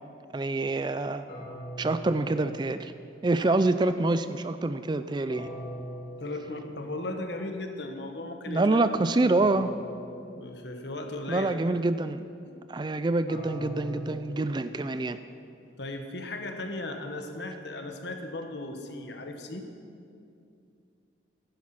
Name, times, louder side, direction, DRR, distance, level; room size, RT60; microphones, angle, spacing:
voice 1, 0.3-1.3 1.8-2.9 3.2-5.5 8.5-9.7 11.3-12.2 12.7-15.2, right 2 dB, 25° right, 11 dB, 0.3 m, -26 dB
sound 1, 1.3-3.3 5.3-7.1 9.3-11.1 13.3-15.5, equal, 35° left, 3.3 m, -42 dB
voice 2, 6.2-8.9 9.2-9.4 10.4-11.6 12.4-12.5 15.8-19.7, left 2 dB, 60° left, 5 dB, 1.3 m, -36 dB
14.5 x 11.0 x 6.0 m, 2.4 s
head